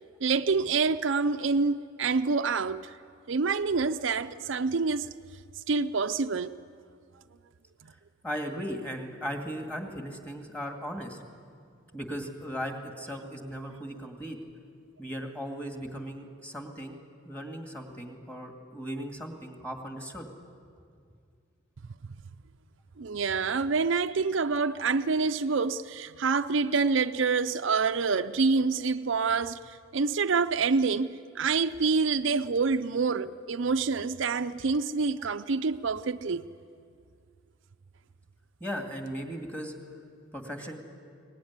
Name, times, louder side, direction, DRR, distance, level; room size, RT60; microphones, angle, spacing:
voice 1, 0.2-2.8 3.3-5.1 5.7-6.5 23.0-29.6 29.9-36.5, right 4 dB, 70° right, 0.5 m, -27 dB
voice 2, 8.2-11.2 11.9-14.4 15.0-17.0 17.2-20.3 38.6-39.7 40.3-40.8, equal, 5° left, 2.3 m, -37 dB
23.0 x 19.5 x 9.7 m
head